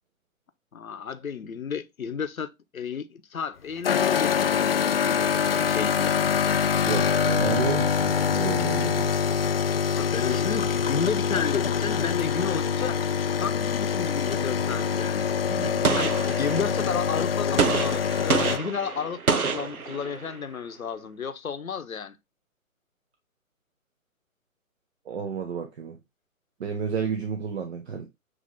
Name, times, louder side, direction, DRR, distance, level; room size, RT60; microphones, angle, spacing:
voice 1, 0.7-6.2 10.0-13.1 13.4-15.3 15.6-22.2, left 6 dB, 75° left, 0.9 m, -32 dB
sound 1, 3.8-18.6, left 7 dB, 45° left, 0.4 m, -25 dB
voice 2, 6.9-9.1 15.5-15.9 25.1-26.0 26.6-28.1, right 6 dB, 50° right, 1.2 m, -31 dB
Gunshot gunfire, 15.8-16.9 17.6-20.4, right 5 dB, 90° right, 0.9 m, -27 dB
7.6 x 3.3 x 3.8 m
figure-of-eight pair, 135°, 42 cm